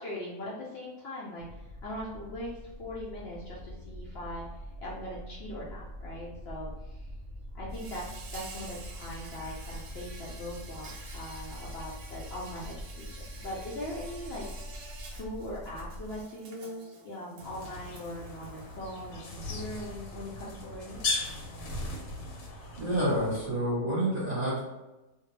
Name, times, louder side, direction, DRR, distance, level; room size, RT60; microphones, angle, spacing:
voice 1, 0.0-4.4 4.8-7.1 7.5-8.0 8.3-21.0, left 1 dB, 70° left, -6 dB, 0.6 m, -41 dB
sound 1, 1.4-16.2, left 1 dB, 90° right, 0.5 m, -44 dB
Insect, 7.7-19.1, right 4 dB, 70° right, 1.0 m, -49 dB
sound 2, 17.4-23.5, left 2 dB, 90° left, 1.3 m, -38 dB
voice 2, 22.8-24.6, right 1 dB, 30° right, -9 dB, 0.9 m, -28 dB
2.6 x 2.1 x 3.1 m, 1.0 s
omnidirectional pair, 1.7 m